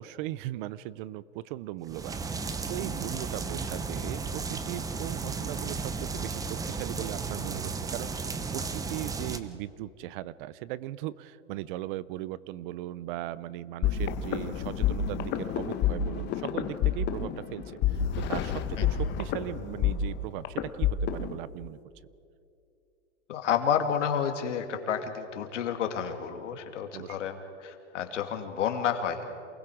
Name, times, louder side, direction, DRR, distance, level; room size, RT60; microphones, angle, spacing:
voice 1, 0.0-21.8 26.9-27.2, right 15 dB, 45° right, 19 dB, 0.6 m, -38 dB
sound 1, 1.9-9.4, right 4 dB, 10° right, 0.8 m, -34 dB
sound 2, 13.8-21.4, left 8 dB, 30° left, 1.2 m, -29 dB
voice 2, 23.3-29.2, left 8 dB, 90° left, 5 dB, 2.5 m, -30 dB
28.0 x 20.0 x 4.9 m, 2.6 s
supercardioid pair, 140°, 36 cm